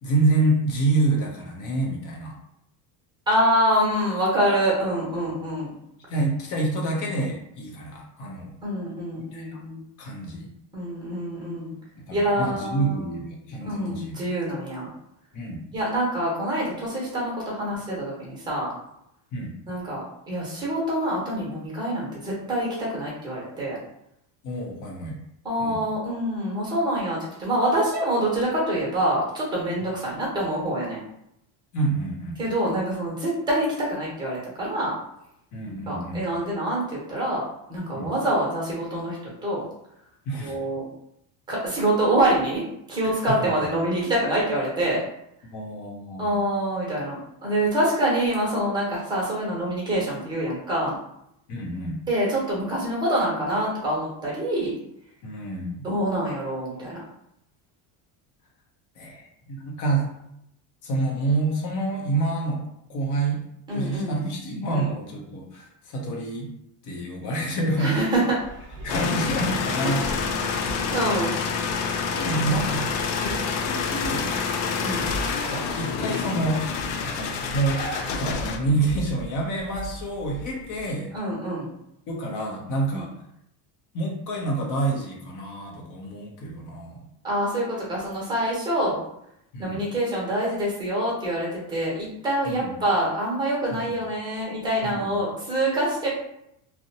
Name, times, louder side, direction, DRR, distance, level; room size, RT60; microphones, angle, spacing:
voice 1, 0.0-2.4 6.1-8.6 9.3-9.6 10.0-10.5 12.0-14.2 15.3-15.6 19.3-19.5 24.4-25.2 25.6-25.8 31.7-32.4 35.5-36.2 37.9-38.1 40.2-40.6 45.4-46.3 51.5-52.0 55.2-55.9 59.0-60.1 60.8-62.6 62.9-63.4 63.7-66.5 66.8-68.1 68.8-70.9 72.1-72.8 73.2-74.4 75.4-76.6 77.0-77.9 78.1-81.1 82.1-83.1 83.9-87.0 89.5-89.8 92.5-92.7 93.7-93.9 94.8-95.1, right 2 dB, 40° left, 0 dB, 0.7 m, -28 dB
voice 2, 3.3-5.7 8.6-9.8 10.7-11.7 12.1-13.1 13.6-14.9 15.7-18.7 19.7-23.8 25.4-31.0 32.4-34.9 35.7-37.4 37.7-39.6 40.4-40.8 41.5-45.0 46.2-51.0 52.1-54.7 55.8-57.0 63.7-64.2 64.7-64.8 67.8-68.4 69.8-69.9 70.4-70.6 70.9-71.3 74.8-75.1 81.1-81.7 82.9-83.0 87.2-89.0 89.6-96.1, right 1 dB, 10° right, -4 dB, 0.9 m, -26 dB
sound 1, 68.3-80.9, right 1 dB, 25° right, 0.5 m, -39 dB
sound 2, 68.9-78.6, left 6 dB, 85° left, 0.5 m, -28 dB
2.6 x 2.1 x 2.7 m, 0.78 s
cardioid pair, 155°, 45 cm